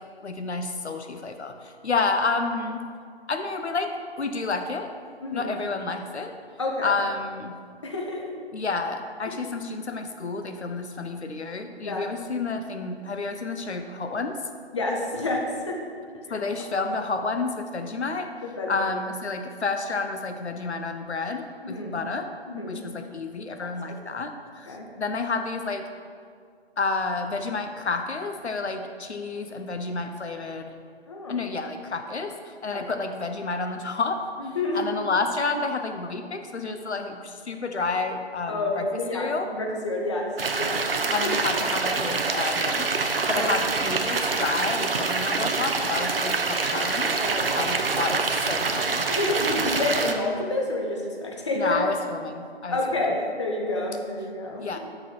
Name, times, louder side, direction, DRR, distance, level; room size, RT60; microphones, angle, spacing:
voice 1, 0.2-2.8 3.3-4.9 5.3-6.4 6.8-7.6 8.5-14.4 16.3-18.3 18.7-22.3 22.7-25.8 26.8-30.7 31.3-38.9 39.1-39.5 41.1-42.9 43.3-47.2 47.5-49.6 51.5-52.8 54.6-54.8, left 3 dB, 85° left, 6 dB, 0.7 m, -30 dB
voice 2, 6.6-7.0 7.8-8.3 11.8-12.0 14.7-15.8 16.3-16.4 18.4-18.9 21.6-22.0 22.5-22.8 23.6-23.7 24.7-24.9 31.1-31.5 32.7-32.9 34.4-34.8 38.5-40.8 43.3-43.5 47.2-47.7 49.1-51.8 52.7-54.6, left 2 dB, 25° left, -1 dB, 0.7 m, -29 dB
sound 1, 40.4-50.1, right 4 dB, 60° right, 0.6 m, -26 dB
6.2 x 5.1 x 4.4 m, 2.1 s
figure-of-eight pair, 145°, 33 cm